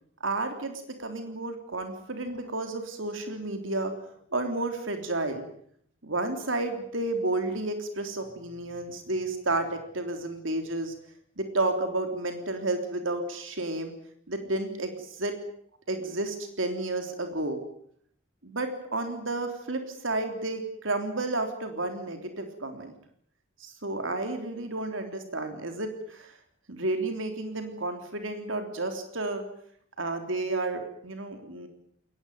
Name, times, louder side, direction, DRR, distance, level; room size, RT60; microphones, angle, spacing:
voice 1, 0.2-3.9 4.3-5.4 6.0-10.9 11.4-13.9 14.3-15.4 15.9-17.6 18.4-22.9 23.6-26.3 26.7-29.4 30.0-31.7, right 2 dB, 85° right, 6 dB, 3.5 m, -31 dB
22.0 x 19.0 x 9.3 m, 0.66 s
head